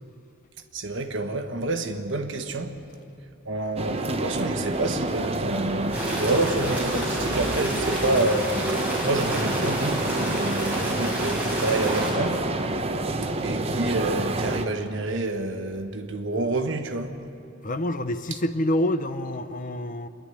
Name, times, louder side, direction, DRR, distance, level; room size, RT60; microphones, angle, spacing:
voice 1, 0.7-2.8 3.4-8.8 9.0-12.5 13.2-17.2, right 2 dB, 60° right, 1.3 m, -28 dB
sound 1, 3.8-14.6, right 2 dB, 30° right, 0.9 m, -28 dB
sound 2, 5.9-12.1, right 1 dB, 5° right, 5.2 m, -31 dB
voice 2, 17.6-20.1, left 1 dB, 40° left, 0.7 m, -27 dB
26.0 x 11.0 x 9.9 m
head